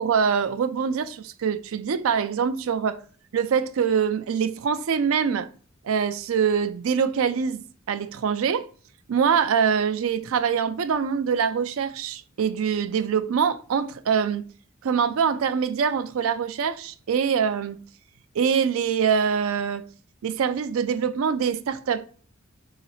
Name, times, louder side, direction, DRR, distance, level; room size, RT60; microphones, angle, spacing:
voice 1, 0.0-3.0 3.3-5.5 5.8-8.7 9.1-14.4 14.8-17.8 18.4-19.8 20.2-22.1, right 7 dB, 70° right, 0.4 m, -24 dB
3.9 x 2.9 x 4.0 m
head